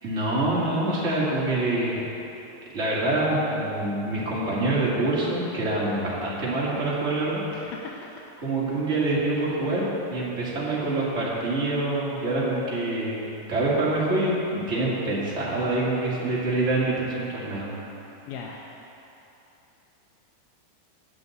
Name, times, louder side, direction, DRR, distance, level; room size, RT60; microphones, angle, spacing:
voice 1, 0.0-2.0 2.7-7.4 8.4-17.7, right 2 dB, 30° right, -7 dB, 1.4 m, -26 dB
voice 2, 7.5-8.2 9.6-9.8 18.3-18.7, left 5 dB, 80° left, -2 dB, 2.6 m, -40 dB
9.4 x 6.8 x 8.0 m, 3.0 s
omnidirectional pair, 4.5 m